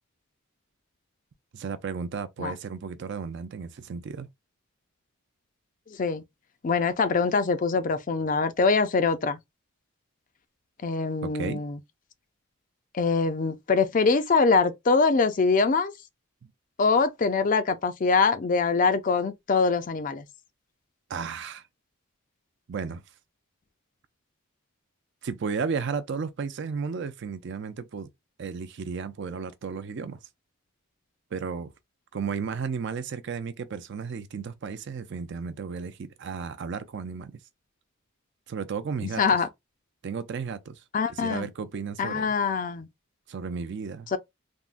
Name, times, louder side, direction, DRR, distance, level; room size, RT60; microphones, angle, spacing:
voice 1, 1.5-4.3 11.2-11.6 21.1-21.6 22.7-23.0 25.2-28.1 28.4-30.2 31.3-31.7 32.1-37.3 38.5-39.2 40.0-42.3 43.3-44.1, right 5 dB, 55° right, 0.4 m, -33 dB
voice 2, 6.6-9.4 10.8-11.8 12.9-15.9 16.8-20.2 39.0-39.5 40.9-41.5 42.0-42.9 44.1-44.2, left 4 dB, 35° left, 0.4 m, -23 dB
3.5 x 2.1 x 2.4 m
head